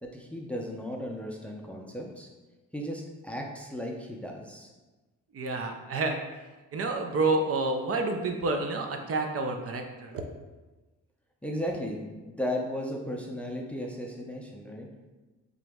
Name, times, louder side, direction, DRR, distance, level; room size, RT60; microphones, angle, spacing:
voice 1, 0.0-2.3 2.7-4.7 11.4-14.9, equal, 5° left, 0 dB, 0.5 m, -35 dB
voice 2, 5.3-6.2 6.7-10.2, right 3 dB, 50° right, 4 dB, 0.5 m, -29 dB
3.8 x 3.0 x 3.5 m, 1.2 s
cardioid pair, 90°, 30 cm